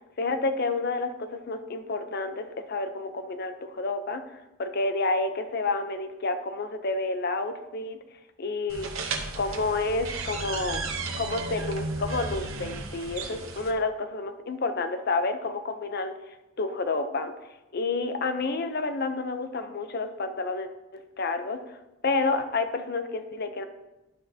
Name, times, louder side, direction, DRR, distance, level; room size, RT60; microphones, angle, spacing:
voice 1, 0.2-4.2 4.6-8.0 8.4-8.9 9.4-10.9 11.2-16.2 16.6-17.3 17.7-21.8 22.0-23.6, left 3 dB, 50° left, 8 dB, 0.6 m, -29 dB
sound 1, 8.7-13.7, right 3 dB, 90° right, 0.9 m, -34 dB
11.0 x 5.7 x 2.8 m, 1.0 s
head